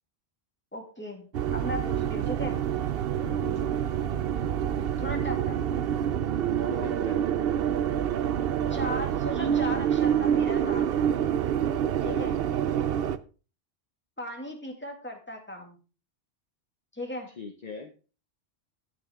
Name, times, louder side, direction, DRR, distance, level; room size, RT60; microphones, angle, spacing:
voice 1, 0.7-2.6 5.0-5.6 8.7-11.0 12.0-12.4 14.2-15.8 16.9-17.3, left 1 dB, 10° left, 2 dB, 2.1 m, -37 dB
sound 1, 1.3-13.2, right 9 dB, 65° right, 0.8 m, -27 dB
voice 2, 3.2-3.7 6.6-7.2 11.8-12.3 17.4-17.9, left 4 dB, 40° left, 7 dB, 0.9 m, -40 dB
10.0 x 9.5 x 3.5 m, 0.35 s
omnidirectional pair, 1.1 m